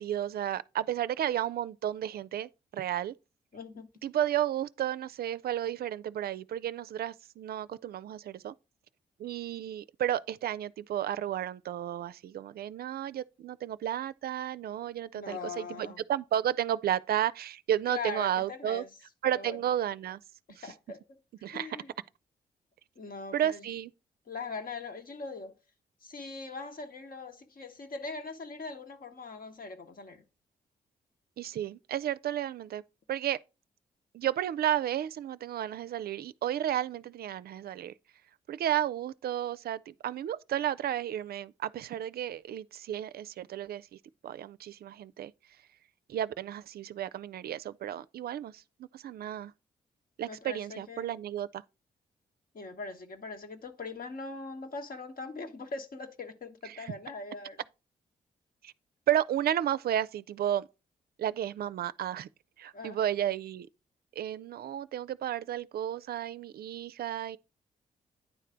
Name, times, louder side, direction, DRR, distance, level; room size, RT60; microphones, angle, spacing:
voice 1, 0.0-3.1 4.0-8.5 9.2-18.8 19.2-20.2 20.5-20.7 21.4-21.7 23.3-23.9 31.4-32.8 33.1-33.4 34.1-37.9 38.5-44.0 44.2-45.3 46.1-49.5 50.2-51.6 56.7-56.9 58.6-58.7 59.1-60.7 61.2-62.3 62.6-63.7 64.2-67.4, right 11 dB, 60° right, 0.4 m, -32 dB
voice 2, 3.5-3.9 15.1-16.0 17.9-18.9 19.3-19.6 20.6-21.0 21.4-21.9 23.0-23.7 24.3-25.6 26.0-30.2 50.3-51.2 52.5-57.6 62.7-63.0, left 3 dB, 55° left, 1.3 m, -41 dB
9.6 x 3.3 x 5.0 m
hypercardioid pair, 40°, 18 cm